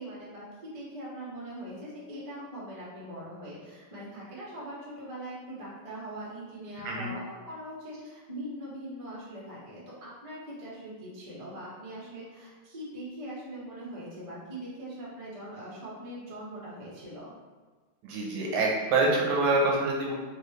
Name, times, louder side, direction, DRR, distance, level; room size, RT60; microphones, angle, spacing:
voice 1, 0.0-17.3, right 1 dB, 60° right, -7 dB, 0.3 m, -41 dB
voice 2, 18.0-20.1, right 2 dB, 80° right, -2 dB, 1.6 m, -26 dB
3.8 x 2.3 x 3.2 m, 1.4 s
omnidirectional pair, 2.4 m